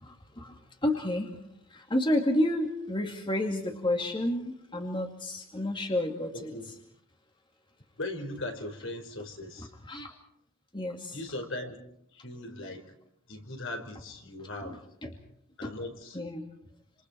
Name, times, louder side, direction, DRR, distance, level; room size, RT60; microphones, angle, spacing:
voice 1, 0.0-1.3 1.7-6.5 9.9-10.1 10.7-11.1 15.0-15.1 15.6-15.7 16.1-16.5, left 1 dB, 25° left, 3 dB, 2.3 m, -30 dB
voice 2, 6.3-6.7 8.0-9.7 11.1-11.8 12.1-12.9 13.3-14.8 15.6-16.2, left 2 dB, 65° left, 4 dB, 5.0 m, -39 dB
28.0 x 27.5 x 4.6 m, 0.70 s
head